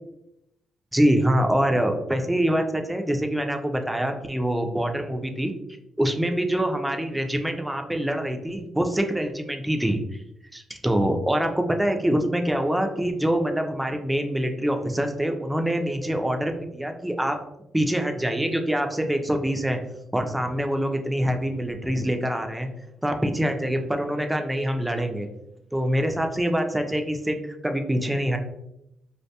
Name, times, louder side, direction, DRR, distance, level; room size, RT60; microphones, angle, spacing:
voice 1, 0.9-5.5 6.0-10.0 10.5-17.4 17.7-19.8 20.1-22.7 23.0-25.3 25.7-28.4, equal, 10° right, 5 dB, 0.4 m, -25 dB
2.4 x 2.2 x 2.7 m, 0.84 s
cardioid pair, 70°, 0 cm